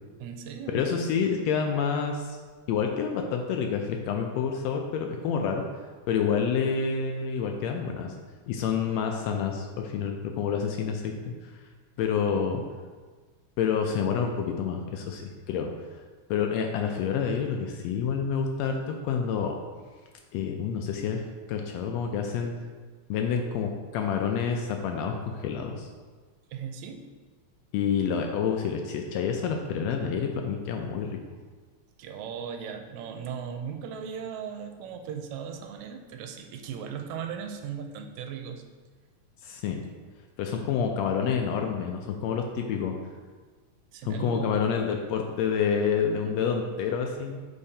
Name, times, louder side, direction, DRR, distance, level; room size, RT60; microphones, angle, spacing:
voice 1, 0.2-0.8 12.3-12.5 26.5-27.0 32.0-38.6 43.9-44.8, right 7 dB, 80° right, 4 dB, 1.9 m, -37 dB
voice 2, 0.7-2.4 2.7-5.6 6.1-8.1 8.5-11.5 12.0-12.6 13.6-15.7 16.3-19.6 20.3-21.2 21.5-22.5 23.1-25.9 27.7-31.2 39.4-39.8 40.4-43.0 44.0-47.4, left 6 dB, 80° left, 3 dB, 1.6 m, -28 dB
8.4 x 4.7 x 2.7 m, 1.4 s
omnidirectional pair, 3.3 m